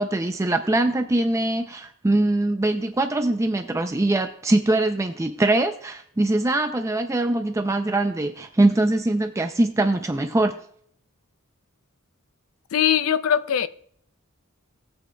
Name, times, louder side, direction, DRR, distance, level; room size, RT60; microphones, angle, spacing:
voice 1, 0.0-10.6, right 2 dB, 15° right, 0.4 m, -22 dB
voice 2, 12.7-13.7, left 9 dB, 75° left, 0.4 m, -21 dB
17.0 x 8.3 x 2.2 m
head